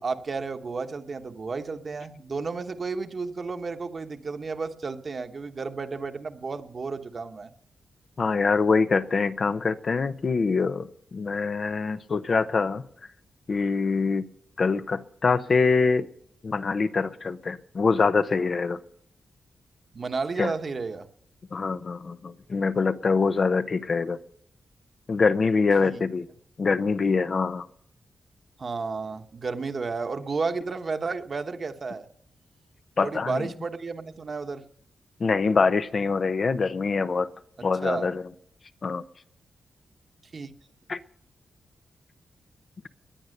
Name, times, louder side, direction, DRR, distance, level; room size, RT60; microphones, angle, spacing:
voice 1, 0.0-7.5 19.9-21.1 25.8-26.0 28.6-32.1 33.0-34.6 37.8-38.1 40.3-40.5, right 4 dB, 45° right, 1.2 m, -32 dB
voice 2, 8.2-12.8 13.5-14.2 14.6-16.1 16.4-18.8 20.4-20.5 21.5-24.2 25.1-26.3 26.6-27.7 33.0-33.5 35.2-37.3 37.6-38.2 38.8-39.0 40.9-41.0, left 4 dB, 50° left, 0.8 m, -24 dB
19.0 x 10.5 x 6.6 m
wide cardioid pair, 105°, 0 cm